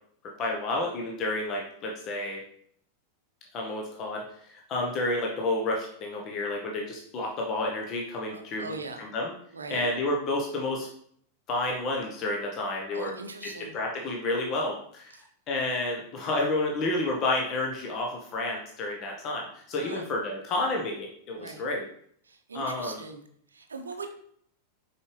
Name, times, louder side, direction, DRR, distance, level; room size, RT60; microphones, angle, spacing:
voice 1, 0.4-2.4 3.5-9.3 9.7-10.9 11.5-13.1 13.4-15.1 15.5-21.9 22.5-23.0, left 2 dB, 35° left, 0 dB, 1.1 m, -30 dB
voice 2, 8.3-9.1 9.5-9.9 12.9-13.7 15.1-15.2 19.7-20.0 21.3-21.6 22.3-23.2 23.5-24.1, right 3 dB, 75° right, 6 dB, 0.8 m, -40 dB
6.9 x 5.1 x 3.2 m, 0.64 s
figure-of-eight pair, 90°, 0 cm